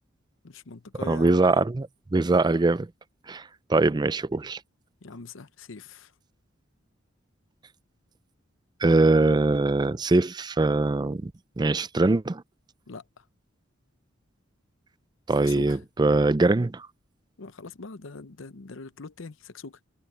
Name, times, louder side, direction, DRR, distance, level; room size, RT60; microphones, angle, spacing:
voice 1, 0.4-1.6 5.0-6.1 12.9-13.3 15.3-15.8 17.4-19.8, left 4 dB, 75° left, 0.8 m, -42 dB
voice 2, 1.1-2.9 3.3-4.6 8.8-11.3 11.6-12.4 15.3-16.9, right 2 dB, 20° right, 0.4 m, -22 dB
head